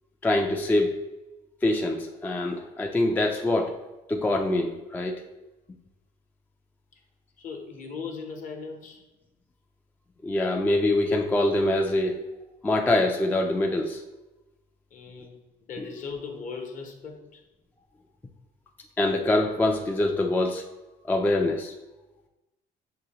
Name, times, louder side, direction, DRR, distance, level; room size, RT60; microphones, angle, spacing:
voice 1, 0.2-1.0 1.6-3.7 4.1-5.2 10.2-12.2 12.6-14.0 19.0-20.6 21.1-21.7, left 2 dB, 10° left, 2 dB, 0.3 m, -24 dB
voice 2, 7.4-9.0 14.9-15.4 15.7-17.4, left 5 dB, 50° left, 3 dB, 0.9 m, -38 dB
6.0 x 2.6 x 2.9 m, 1.0 s
cardioid pair, 110°, 17 cm